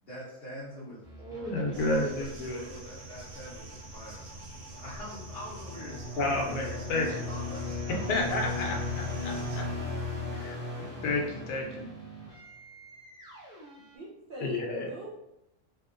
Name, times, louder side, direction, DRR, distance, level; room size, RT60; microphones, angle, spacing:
voice 1, 0.0-8.2, right 1 dB, 50° left, -8 dB, 0.9 m, -44 dB
sound 1, 1.0-14.0, right 1 dB, 5° right, 0.6 m, -46 dB
voice 2, 1.4-2.7 6.2-7.1 8.1-8.8 9.2-9.6 10.3-10.6 11.0-11.9 14.4-14.9, left 2 dB, 85° left, 1 dB, 1.2 m, -30 dB
sound 2, 1.7-9.6, right 1 dB, 65° right, 0.9 m, -49 dB
sound 3, 4.8-12.2, left 3 dB, 30° right, 0.9 m, -36 dB
voice 3, 13.9-15.1, right 2 dB, 80° right, -6 dB, 0.4 m, -43 dB
3.1 x 2.7 x 2.4 m, 0.86 s
omnidirectional pair, 1.6 m